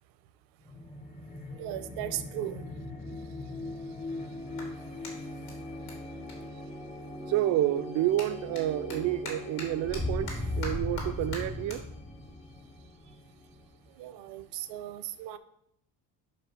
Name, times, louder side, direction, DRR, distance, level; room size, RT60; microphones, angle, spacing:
sound 1, 0.6-14.1, left 2 dB, 15° left, 0.9 m, -39 dB
voice 1, 1.5-2.7 14.0-15.4, right 12 dB, 80° right, 0.8 m, -37 dB
Clapping, 4.5-7.3 7.6-14.2, left 3 dB, 75° left, 2.8 m, -47 dB
voice 2, 7.3-11.8, right 13 dB, 45° right, 0.4 m, -29 dB
5.4 x 5.3 x 6.0 m
cardioid pair, 155°, 42 cm